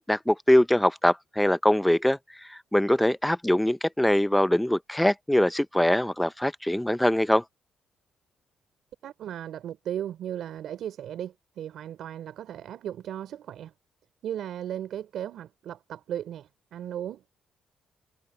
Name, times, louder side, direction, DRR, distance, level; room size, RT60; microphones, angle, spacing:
voice 1, 0.0-7.4, left 1 dB, 5° left, 0.7 m, -23 dB
voice 2, 9.0-13.7 14.2-17.4, right 10 dB, 70° right, 4.3 m, -36 dB
cardioid pair, 90°, 0 cm